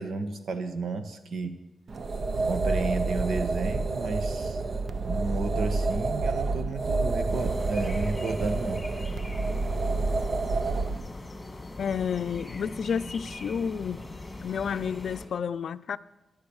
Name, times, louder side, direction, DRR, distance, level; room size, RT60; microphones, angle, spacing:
voice 1, 0.0-1.6 2.4-4.6 5.0-8.8, right 3 dB, 75° right, 1.4 m, -32 dB
sound 1, 1.9-11.0, right 3 dB, 45° right, 0.6 m, -28 dB
sound 2, 7.3-15.3, left 2 dB, 15° left, 1.9 m, -41 dB
voice 2, 11.8-14.1 14.4-16.0, left 7 dB, 65° left, 0.5 m, -30 dB
13.5 x 11.5 x 7.2 m
wide cardioid pair, 150°, 0 cm